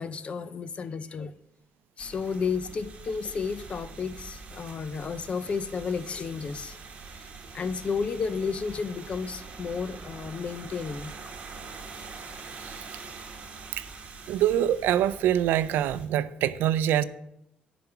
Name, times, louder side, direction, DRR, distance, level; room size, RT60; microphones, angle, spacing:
voice 1, 0.0-1.3 2.0-6.8 7.1-7.2 7.5-11.1, left 5 dB, 35° left, 0.5 m, -32 dB
sound 1, 2.0-16.1, right 4 dB, 40° right, 1.6 m, -44 dB
voice 2, 14.3-17.0, right 11 dB, 90° right, 0.4 m, -25 dB
10.5 x 5.1 x 5.8 m
cardioid pair, 140°, 3 cm